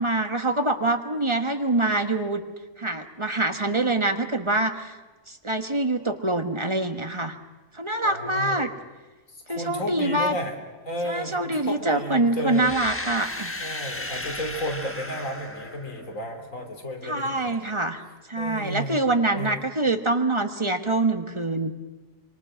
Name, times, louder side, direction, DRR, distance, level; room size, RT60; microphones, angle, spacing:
voice 1, 0.0-2.4 2.8-5.0 5.3-7.4 7.7-8.7 9.5-10.3 11.0-13.5 17.0-18.0 18.3-21.7, right 2 dB, 25° right, 7 dB, 1.3 m, -25 dB
voice 2, 8.0-8.7 9.3-10.6 10.8-12.8 13.6-17.8 18.4-19.0 19.3-19.7, equal, 85° left, 4 dB, 3.5 m, -33 dB
sound 1, 12.5-16.4, left 1 dB, 10° left, 1.2 m, -35 dB
25.5 x 24.5 x 6.3 m, 1.2 s
omnidirectional pair, 1.3 m